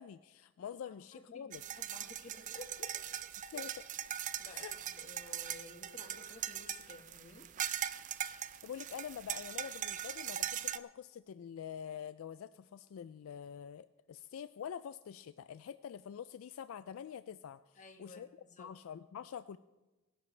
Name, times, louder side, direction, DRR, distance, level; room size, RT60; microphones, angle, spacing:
voice 1, 0.0-1.6 3.5-3.8 4.5-4.8 8.6-18.3 18.6-19.6, left 8 dB, 70° left, 13 dB, 0.3 m, -46 dB
voice 2, 0.8-3.0 4.4-7.5 17.7-18.7, left 2 dB, 35° left, 3 dB, 1.5 m, -54 dB
sound 1, 1.5-10.8, right 10 dB, 35° right, 0.4 m, -40 dB
22.0 x 10.5 x 3.3 m, 1.1 s
head